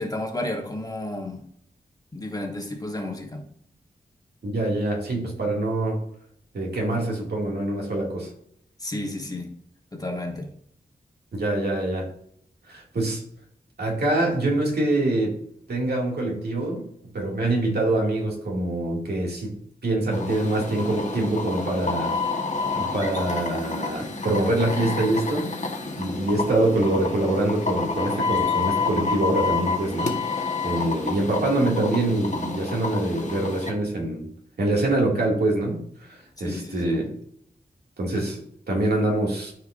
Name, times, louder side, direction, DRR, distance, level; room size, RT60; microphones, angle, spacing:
voice 1, 0.0-1.4 2.1-3.4 8.8-9.5 9.9-10.5 36.4-37.0, left 1 dB, 20° left, 1 dB, 1.4 m, -32 dB
voice 2, 4.4-6.0 6.5-8.3 11.3-12.1 12.7-13.2 13.8-15.4 15.7-16.8 17.1-22.2 22.6-25.5 26.0-34.3 34.6-35.8 36.1-37.1 38.0-39.5, right 2 dB, 75° right, -1 dB, 2.3 m, -25 dB
sound 1, 20.1-33.7, left 4 dB, 45° left, 1.3 m, -29 dB
13.0 x 4.7 x 2.6 m, 0.69 s
wide cardioid pair, 105°, 17 cm